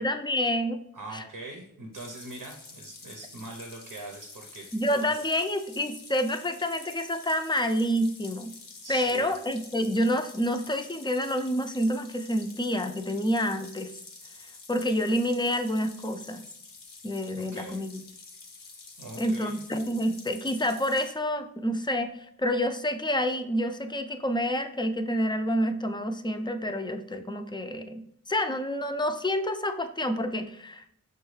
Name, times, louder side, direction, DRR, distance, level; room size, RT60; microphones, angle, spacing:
voice 1, 0.0-0.8 1.1-1.2 4.7-8.5 8.9-13.9 14.7-16.4 17.0-18.0 19.2-30.9, equal, 15° left, 8 dB, 0.3 m, -28 dB
voice 2, 0.9-5.2 8.8-9.4 17.3-17.8 19.0-19.6, right 2 dB, 90° right, 1 dB, 0.7 m, -42 dB
sound 1, 1.9-21.1, left 4 dB, 90° left, 0.7 m, -48 dB
6.0 x 2.3 x 3.1 m, 0.72 s
wide cardioid pair, 55°, 32 cm